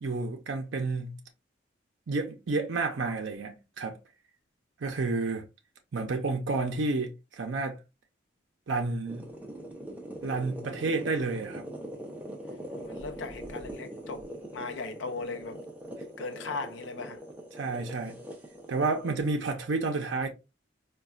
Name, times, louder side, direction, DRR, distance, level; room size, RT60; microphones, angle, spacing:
voice 1, 0.0-1.2 2.1-4.0 4.8-5.4 5.9-7.8 8.7-9.3 10.2-11.6 17.5-18.2 18.7-20.3, right 3 dB, 85° right, 0.5 m, -30 dB
sound 1, 9.1-19.1, equal, 10° right, 0.6 m, -42 dB
voice 2, 12.8-14.3 14.5-15.6 16.2-17.2, left 4 dB, 80° left, 0.5 m, -38 dB
4.0 x 2.2 x 2.3 m
head